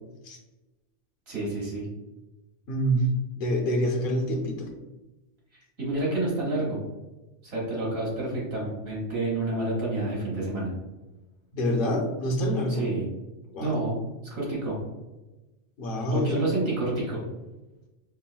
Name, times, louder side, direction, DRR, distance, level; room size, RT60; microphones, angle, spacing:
voice 1, 1.3-1.9 5.8-6.8 7.4-10.7 12.7-13.1 13.6-14.0 14.3-14.8 16.1-17.2, right 2 dB, 85° right, -6 dB, 1.8 m, -29 dB
voice 2, 2.7-3.0 3.4-4.7 11.5-12.9 13.5-13.7 15.8-16.4, equal, 60° left, 1 dB, 0.6 m, -26 dB
4.5 x 2.0 x 2.2 m, 1.1 s
omnidirectional pair, 1.4 m